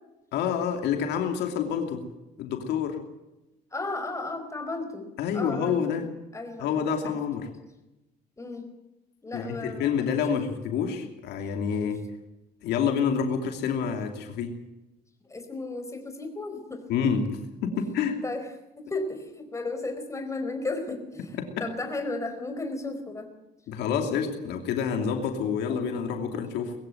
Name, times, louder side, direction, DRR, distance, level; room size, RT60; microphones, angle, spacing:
voice 1, 0.3-2.0 2.4-3.0 5.2-6.1 6.6-7.5 9.3-12.0 12.6-14.5 16.9-18.2 21.4-21.5 23.7-26.7, left 7 dB, 80° left, 4 dB, 2.8 m, -28 dB
voice 2, 3.7-5.1 5.3-6.1 6.3-7.2 7.4-7.6 8.4-8.7 9.2-10.5 11.8-11.9 15.3-16.8 17.7-17.8 18.2-18.5 18.8-21.3 21.6-23.3, left 2 dB, 15° left, 6 dB, 4.6 m, -34 dB
21.0 x 15.5 x 9.2 m, 0.99 s
cardioid pair, 110°, 17 cm